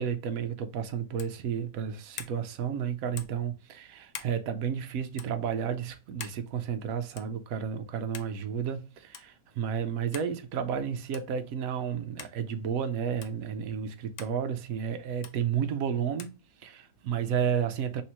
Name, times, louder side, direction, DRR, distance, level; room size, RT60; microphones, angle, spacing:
voice 1, 0.0-16.3 16.6-18.0, right 8 dB, 65° right, 0.9 m, -32 dB
sound 1, 1.2-1.4 2.2-2.4 3.2-3.4 4.1-4.4 5.1-5.3 6.2-6.4 7.2-7.4 8.1-8.3 9.1-9.3 10.1-10.3 11.1-11.3 12.2-12.4 13.2-13.4 14.2-14.4 15.2-15.4 16.2-16.4, left 8 dB, 70° left, 0.8 m, -43 dB
3.4 x 2.7 x 4.3 m
omnidirectional pair, 1.8 m